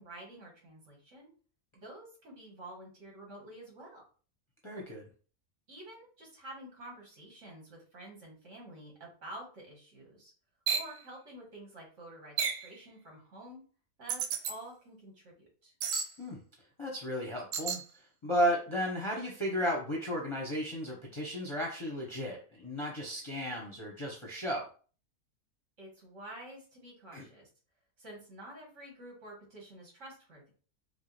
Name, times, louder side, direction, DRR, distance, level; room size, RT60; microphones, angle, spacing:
voice 1, 0.0-1.3 1.8-4.0 5.7-10.3 10.7-13.6 14.0-15.7 25.8-27.5 28.0-30.5, right 1 dB, 55° right, -2 dB, 1.9 m, -49 dB
voice 2, 4.6-5.0 16.2-16.4 16.8-17.8 18.2-24.7 27.1-27.2, equal, 25° left, -3 dB, 0.7 m, -34 dB
sound 1, 10.7-10.9 12.4-12.7 14.1-14.5 15.8-16.1 17.5-17.8, right 7 dB, 85° right, 1.1 m, -32 dB
4.9 x 2.1 x 3.2 m, 0.39 s
omnidirectional pair, 1.5 m